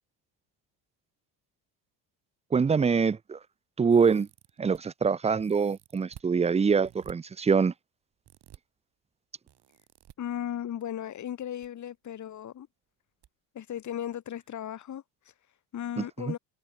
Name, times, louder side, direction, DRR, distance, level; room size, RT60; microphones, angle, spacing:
voice 1, 2.5-3.4 3.8-4.3 4.6-7.7 16.0-16.1, right 5 dB, 15° right, 0.5 m, -24 dB
sound 1, 3.9-4.8 5.4-6.3 6.8-7.1 8.2-8.6 9.5-10.1 11.3-11.7 11.9-12.0 13.2-13.3 13.7-13.8, right 11 dB, 55° right, 3.7 m, -52 dB
voice 2, 10.2-12.7 13.5-16.4, left 10 dB, 35° left, 1.1 m, -36 dB
open air
hypercardioid pair, 65°, 49 cm